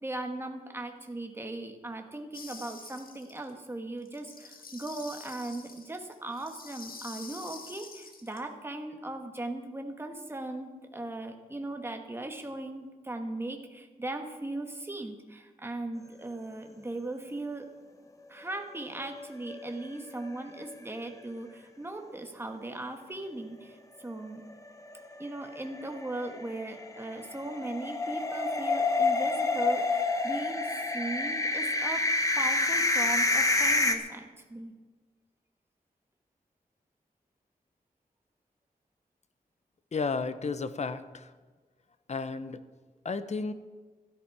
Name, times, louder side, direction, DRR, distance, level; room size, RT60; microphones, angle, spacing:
voice 1, 0.0-17.7 18.3-24.4 25.2-32.0 32.4-34.7, right 2 dB, 15° right, 4 dB, 1.3 m, -38 dB
sound 1, 2.3-3.5 4.0-8.4, left 4 dB, 70° left, 1.5 m, -47 dB
sound 2, 19.0-19.9 20.3-20.4 20.7-20.8 24.9-34.0, left 2 dB, 20° left, 1.1 m, -28 dB
voice 2, 39.9-41.3 42.1-42.6 43.0-43.5, left 4 dB, 50° left, 12 dB, 0.7 m, -33 dB
16.0 x 13.0 x 4.7 m, 1.3 s
wide cardioid pair, 160°, 15 cm